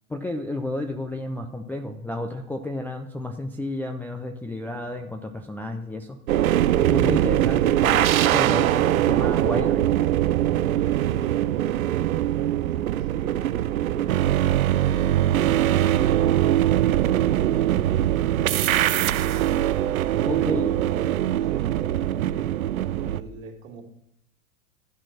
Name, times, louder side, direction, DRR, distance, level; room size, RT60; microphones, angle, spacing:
voice 1, 0.1-6.2 6.9-9.9 20.2-20.7, left 1 dB, 5° left, 2 dB, 0.3 m, -31 dB
sound 1, 6.3-23.2, right 12 dB, 85° right, 0.5 m, -22 dB
voice 2, 10.7-14.3 18.7-19.6 20.4-22.5 22.9-23.8, right 6 dB, 65° right, 1 dB, 2.5 m, -41 dB
13.0 x 4.4 x 6.0 m, 0.83 s
hypercardioid pair, 100°, 41 cm